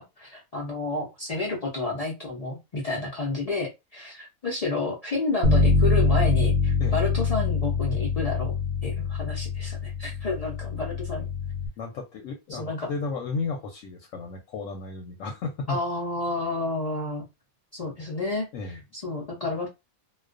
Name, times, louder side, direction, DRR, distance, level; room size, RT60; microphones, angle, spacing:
voice 1, 0.0-11.3 12.5-12.9 15.7-17.2 17.7-19.7, left 3 dB, 85° left, -3 dB, 0.3 m, -30 dB
Bass guitar, 5.4-11.7, left 4 dB, 85° right, 1.1 m, -24 dB
voice 2, 11.8-15.8 18.5-18.8, left 4 dB, 70° left, 3 dB, 0.9 m, -33 dB
2.3 x 2.2 x 2.4 m, 0.23 s
omnidirectional pair, 1.5 m